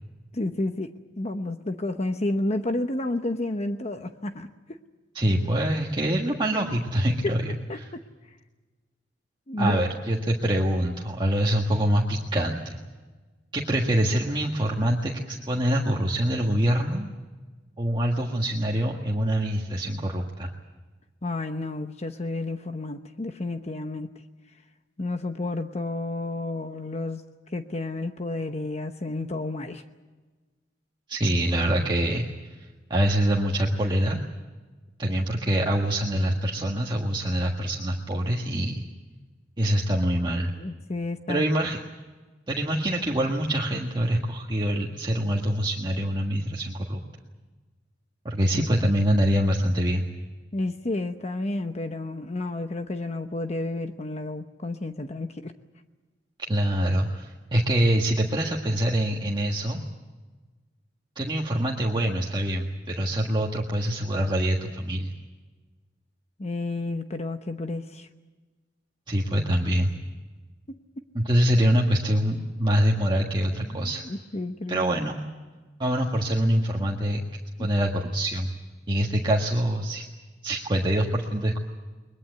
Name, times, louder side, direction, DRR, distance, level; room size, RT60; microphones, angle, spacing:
voice 1, 0.3-0.9 1.2-4.8 7.7-8.0 9.5-9.9 21.2-24.1 25.0-27.2 27.5-29.8 40.6-41.4 48.4-48.7 50.5-55.5 66.4-68.1 70.7-70.8 73.6-74.8 77.6-77.7, left 2 dB, 35° left, 7 dB, 0.9 m, -31 dB
voice 2, 5.1-7.9 9.6-12.8 13.5-17.1 17.8-20.5 31.1-32.3 32.6-34.2 35.0-38.8 39.6-40.5 41.3-41.8 42.5-47.0 48.2-50.0 56.5-59.8 61.1-65.1 69.1-69.9 71.1-74.0 74.7-75.2 75.8-78.5 78.9-80.1 80.4-81.6, right 1 dB, 25° right, -1 dB, 1.6 m, -25 dB
22.0 x 21.5 x 7.9 m, 1.3 s
head